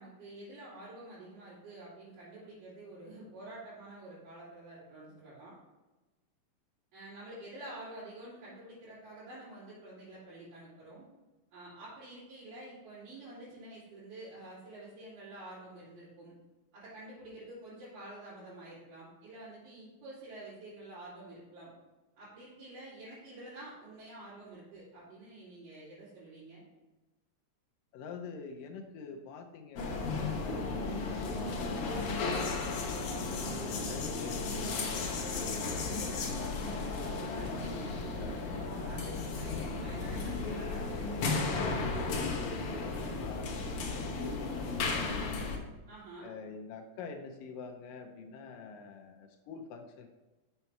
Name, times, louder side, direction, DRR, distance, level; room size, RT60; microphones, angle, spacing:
voice 1, 0.0-5.6 6.9-11.1 11.5-16.3 16.7-21.7 22.2-26.7 37.3-41.8 45.9-46.4, right 1 dB, 75° right, -12 dB, 5.0 m, -49 dB
voice 2, 27.9-32.4 33.2-35.7 36.0-36.7 38.1-39.1 39.5-40.1 40.7-41.2 41.8-45.5 46.2-50.1, left 5 dB, 80° left, 4 dB, 2.4 m, -47 dB
sound 1, 29.8-45.6, left 3 dB, 65° left, 1.5 m, -34 dB
7.1 x 6.8 x 4.5 m, 1.1 s
omnidirectional pair, 4.0 m